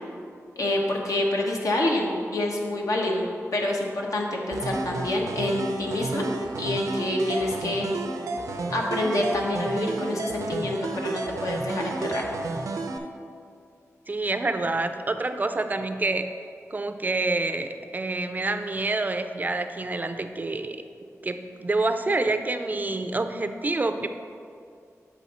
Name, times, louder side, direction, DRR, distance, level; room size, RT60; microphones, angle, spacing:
voice 1, 0.6-3.3 3.5-6.3 6.6-7.9 8.7-12.2, left 1 dB, 80° left, -1 dB, 1.0 m, -27 dB
sound 1, 4.5-13.0, right 3 dB, 90° right, 0.5 m, -31 dB
voice 2, 14.1-20.8 21.2-24.1, right 2 dB, 30° right, 8 dB, 0.4 m, -27 dB
7.1 x 5.5 x 4.1 m, 2.3 s
wide cardioid pair, 100°, 6 cm